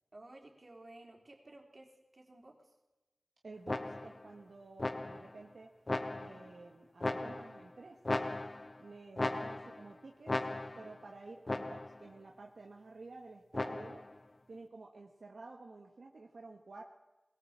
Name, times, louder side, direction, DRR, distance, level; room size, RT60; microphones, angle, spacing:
voice 1, 0.1-2.7, right 1 dB, 50° right, 1 dB, 3.8 m, -55 dB
voice 2, 3.4-5.7 6.1-8.3 8.8-10.3 10.8-14.0 14.5-16.8, right 3 dB, 80° right, 1 dB, 1.4 m, -51 dB
sound 1, 3.7-4.3 4.8-5.4 5.9-6.5 7.0-7.7 8.0-8.8 9.2-9.9 10.3-11.0 11.5-12.1 13.5-14.1, left 2 dB, 40° left, 0.9 m, -37 dB
20.5 x 17.5 x 7.4 m, 1.1 s
wide cardioid pair, 55°, 0 cm